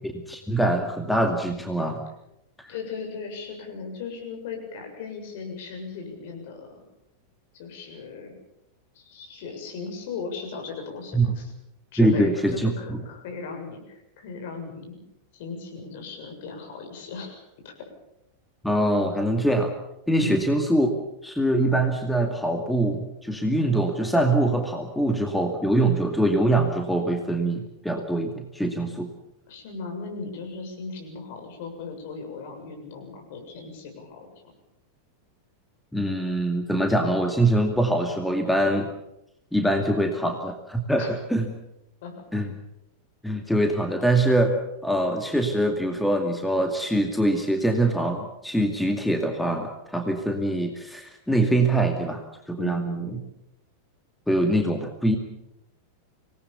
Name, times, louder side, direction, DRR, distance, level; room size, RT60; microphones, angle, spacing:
voice 1, 0.0-2.0 11.1-11.3 12.0-13.0 18.6-19.7 20.1-20.9 21.2-29.1 35.9-38.9 39.5-41.5 42.3-42.5 43.2-52.2 52.5-53.2 54.3-55.2, right 1 dB, 5° left, 4 dB, 2.3 m, -23 dB
voice 2, 2.7-6.9 7.5-8.4 8.9-11.5 11.9-15.0 15.3-17.7 20.2-20.5 29.5-34.3 41.0-41.1 42.0-42.3 52.6-53.2, left 4 dB, 50° left, 3 dB, 7.3 m, -37 dB
26.5 x 19.0 x 7.1 m, 0.85 s
figure-of-eight pair, 90°, 0 cm